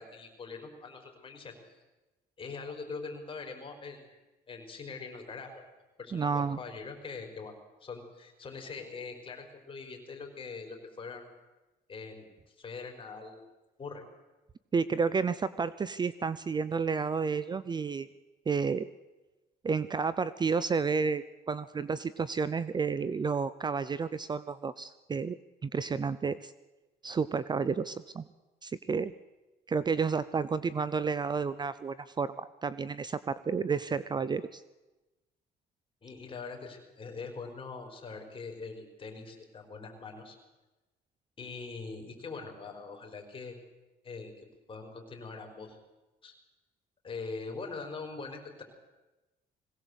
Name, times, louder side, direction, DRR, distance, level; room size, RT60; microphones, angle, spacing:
voice 1, 0.0-1.8 2.4-4.0 4.5-5.6 6.0-7.5 7.8-11.3 11.9-13.4 13.8-14.0 36.0-40.4 41.4-43.6 44.0-45.8 46.2-46.3 47.0-48.6, left 4 dB, 30° left, 4 dB, 4.8 m, -43 dB
voice 2, 6.1-6.6 14.7-18.1 18.5-18.9 19.6-25.4 25.6-26.5 27.0-28.2 28.6-29.1 29.7-34.6, right 5 dB, 25° right, 16 dB, 0.6 m, -31 dB
21.5 x 17.5 x 8.1 m, 1.1 s
cardioid pair, 110°, 17 cm